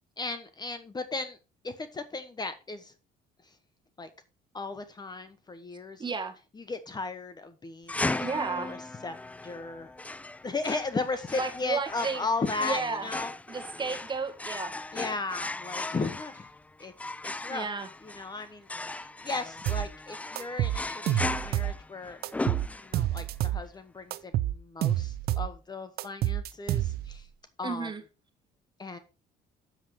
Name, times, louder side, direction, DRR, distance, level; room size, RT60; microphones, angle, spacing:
voice 1, 0.2-1.4 1.6-2.9 4.0-4.1 4.5-6.0 6.6-8.3 8.6-8.8 9.0-9.2 9.4-9.9 10.4-13.3 14.9-16.5 16.8-16.9 17.2-17.7 18.0-22.2 22.8-27.3 27.6-27.9 28.8-29.0, left 3 dB, 25° left, 1.1 m, -36 dB
voice 2, 6.0-6.4 8.2-8.8 11.4-12.3 12.6-13.1 13.5-14.7 17.5-17.9 27.6-28.0, right 4 dB, 25° right, 1.8 m, -33 dB
sound 1, 7.9-23.2, left 2 dB, 10° left, 0.3 m, -37 dB
sound 2, 19.7-19.9 20.4-21.8 22.2-23.7 24.1-25.5 26.0-27.2, right 13 dB, 65° right, 0.7 m, -29 dB
7.6 x 7.3 x 4.7 m
cardioid pair, 110°, 17 cm